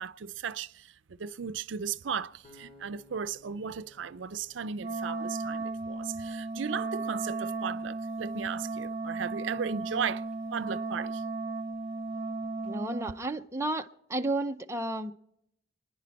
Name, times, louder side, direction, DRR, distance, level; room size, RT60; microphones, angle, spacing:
voice 1, 0.0-10.2 10.5-11.2, right 6 dB, 75° right, 0.5 m, -36 dB
sound 1, 2.4-5.6, left 1 dB, 35° left, 2.6 m, -58 dB
Wind instrument woodwind instrument, 4.8-13.2, right 3 dB, 35° right, 1.5 m, -35 dB
voice 2, 12.6-15.1, right 2 dB, 15° right, 0.7 m, -32 dB
28.0 x 10.0 x 4.1 m
head